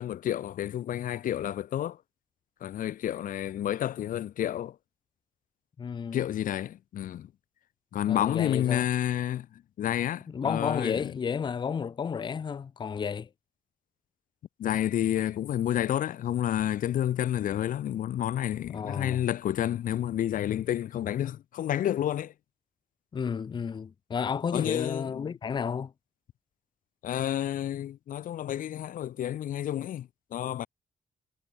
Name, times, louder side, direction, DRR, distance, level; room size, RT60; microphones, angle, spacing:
voice 1, 0.0-2.0 2.6-4.8 6.1-7.3 7.9-11.1 14.6-22.3 24.5-25.3 27.0-30.7, left 11 dB, 85° left, 1.4 m, -30 dB
voice 2, 5.8-6.2 8.1-8.9 10.3-13.3 18.7-19.2 23.1-25.9, left 6 dB, 35° left, 0.8 m, -32 dB
wide cardioid pair, 165°, 14 cm